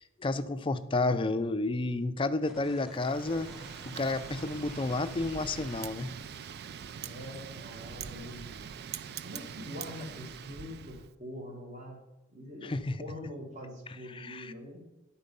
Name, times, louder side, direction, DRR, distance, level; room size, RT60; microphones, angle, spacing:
voice 1, 0.0-3.5 3.9-6.1 12.6-13.0 14.1-14.5, left 2 dB, 25° left, 11 dB, 0.4 m, -31 dB
sound 1, 2.4-6.4 6.7-7.8, left 1 dB, 5° right, 1.1 m, -52 dB
Wind, 3.0-11.1, right 7 dB, 55° right, 0.4 m, -43 dB
voice 2, 7.0-8.7 9.2-12.0 12.3-14.9, left 1 dB, 40° right, 0 dB, 1.8 m, -44 dB
10.0 x 4.4 x 5.4 m, 0.97 s
head